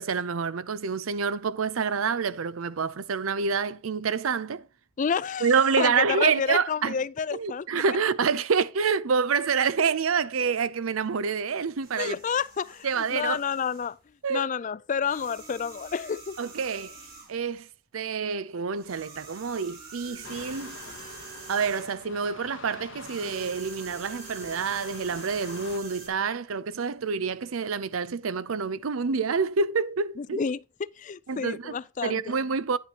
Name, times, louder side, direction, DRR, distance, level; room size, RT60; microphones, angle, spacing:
voice 1, 0.0-4.7 5.4-7.0 7.3-12.2 12.8-13.4 14.2-14.5 16.4-17.0 17.3-17.7 17.9-20.8 21.5-30.4 31.3-32.8, right 5 dB, 85° right, 0.6 m, -27 dB
voice 2, 5.0-5.5 5.8-7.8 12.0-14.0 14.3-16.4 30.2-32.4, left 6 dB, 40° left, 0.4 m, -30 dB
sound 1, 11.8-14.0 15.0-17.4 18.8-22.1 23.0-26.1, right 4 dB, 50° right, 3.2 m, -45 dB
sound 2, 20.2-25.8, left 5 dB, 60° left, 0.9 m, -46 dB
10.0 x 8.5 x 2.9 m
head